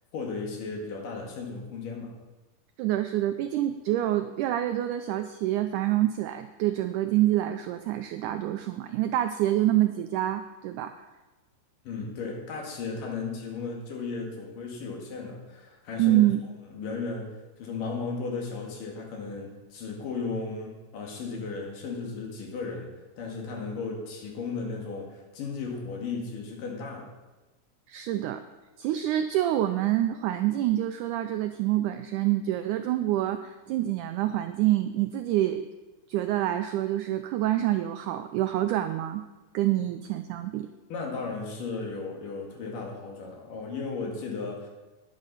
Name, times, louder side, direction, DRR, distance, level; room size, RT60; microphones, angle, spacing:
voice 1, 0.1-2.1 11.9-16.2 16.7-17.3 17.6-22.9 23.2-27.1 40.9-44.7, left 4 dB, 70° left, 0 dB, 3.4 m, -35 dB
voice 2, 2.8-11.0 16.0-16.4 27.9-28.4 28.8-35.7 36.1-39.2 39.5-40.7, right 13 dB, 85° right, 9 dB, 1.8 m, -26 dB
10.0 x 9.9 x 5.6 m, 1.2 s
omnidirectional pair, 4.1 m